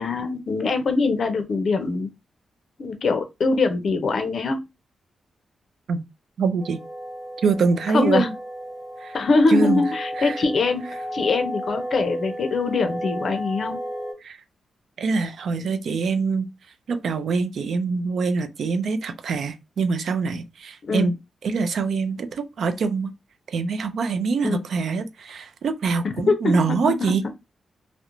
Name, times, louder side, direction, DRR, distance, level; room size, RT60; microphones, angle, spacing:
voice 1, 0.0-2.1 2.8-4.7 7.9-8.3 9.1-10.9 11.1-13.8 20.8-21.1 24.4-24.6 26.3-27.2, left 3 dB, 50° left, 0.5 m, -23 dB
voice 2, 6.4-6.8 7.4-8.3 9.0-9.2 9.5-9.8 10.2-10.4 14.2-14.4 15.0-16.5 16.9-21.1 21.4-23.1 23.5-27.2, right 4 dB, 65° right, 0.3 m, -24 dB
sound 1, 6.6-14.1, equal, 15° left, 1.0 m, -33 dB
2.4 x 2.0 x 2.9 m
wide cardioid pair, 150°, 0 cm